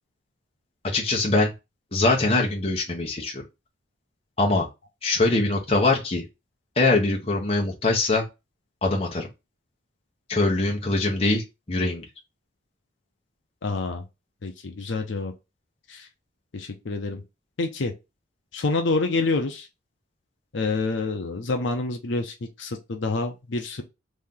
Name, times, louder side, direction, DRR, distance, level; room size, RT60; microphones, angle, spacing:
voice 1, 0.8-1.5 1.9-3.4 4.4-4.7 5.0-6.2 6.8-8.2 8.8-9.3 10.3-12.0, left 2 dB, 30° left, 0.9 m, -23 dB
voice 2, 13.6-14.0 14.4-15.3 15.9-16.1 16.5-17.2 17.6-17.9 18.5-19.7 20.5-23.8, left 3 dB, 75° left, 0.6 m, -27 dB
3.2 x 2.7 x 3.7 m
head